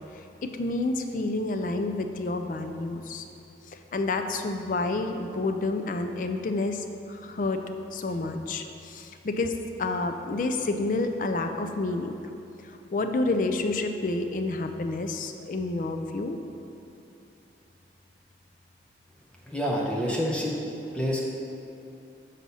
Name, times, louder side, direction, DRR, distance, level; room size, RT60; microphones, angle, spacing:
voice 1, 0.4-3.2 3.9-6.8 7.2-7.6 7.9-8.6 8.9-12.2 12.9-16.4, left 2 dB, 45° left, 6 dB, 0.4 m, -29 dB
voice 2, 19.5-20.5 20.9-21.3, equal, 5° left, -3 dB, 0.7 m, -27 dB
6.1 x 4.1 x 5.4 m, 2.8 s
head